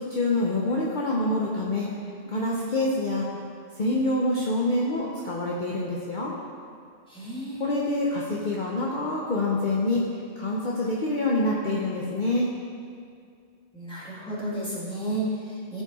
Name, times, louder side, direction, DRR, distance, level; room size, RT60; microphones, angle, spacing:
voice 1, 0.0-1.9 2.3-3.3 3.8-6.3 7.6-10.0 10.4-12.5, left 2 dB, 45° left, -4 dB, 0.9 m, -26 dB
voice 2, 7.1-7.6 13.7-15.8, right 1 dB, 5° left, -7 dB, 2.0 m, -32 dB
14.0 x 4.9 x 4.2 m, 2.3 s
omnidirectional pair, 1.2 m